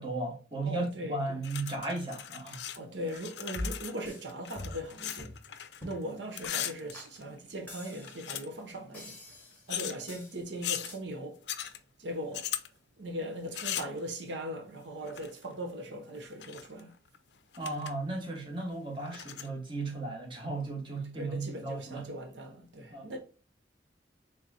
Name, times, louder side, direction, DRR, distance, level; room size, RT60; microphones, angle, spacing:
voice 1, 0.0-2.6 17.6-22.1 22.9-23.1, right 2 dB, 30° right, 1.2 m, -35 dB
voice 2, 0.6-1.4 2.7-5.3 5.8-9.2 9.7-11.4 12.0-12.5 13.0-16.9 19.1-19.2 21.1-23.2, equal, 80° right, 0.8 m, -39 dB
sound 1, 1.4-2.8 3.0-6.0 6.3-7.5 7.9-8.7 9.7-10.0 10.6-10.9 11.5-11.8 12.3-12.7 13.5-14.0 15.1-15.5 16.2-16.8 17.1-17.2 17.5-17.9 18.3-18.4 19.1-19.5, left 11 dB, 70° left, 0.4 m, -38 dB
sound 2, 3.6-4.3 4.6-4.9 5.2-5.4 5.8-6.1 6.4-6.5 6.9-7.1 7.7-8.3 8.9-9.7 10.1-10.4 10.9-11.0, left 1 dB, 10° left, 1.0 m, -42 dB
4.1 x 3.6 x 2.5 m
head